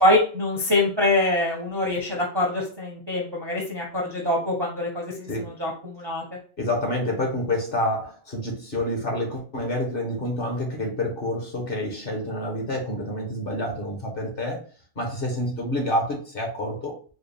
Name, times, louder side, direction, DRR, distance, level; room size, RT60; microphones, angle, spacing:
voice 1, 0.0-6.2, left 1 dB, 25° right, -1 dB, 0.6 m, -24 dB
voice 2, 6.6-14.6 15.0-16.9, left 1 dB, 45° left, 1 dB, 1.1 m, -28 dB
4.3 x 2.3 x 3.4 m, 0.40 s
omnidirectional pair, 1.5 m